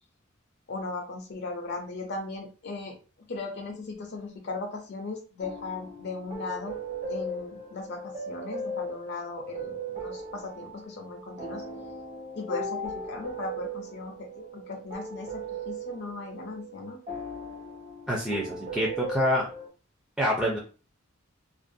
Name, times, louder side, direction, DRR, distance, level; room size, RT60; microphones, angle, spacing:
voice 1, 0.7-3.0 3.3-6.8 7.1-11.6 12.3-17.0, left 3 dB, 55° left, 2 dB, 0.5 m, -37 dB
sound 1, 5.4-19.7, right 1 dB, 35° right, 0.7 m, -38 dB
voice 2, 18.1-19.5 20.2-20.6, equal, 5° right, -4 dB, 0.4 m, -26 dB
2.4 x 2.1 x 2.6 m, 0.35 s
head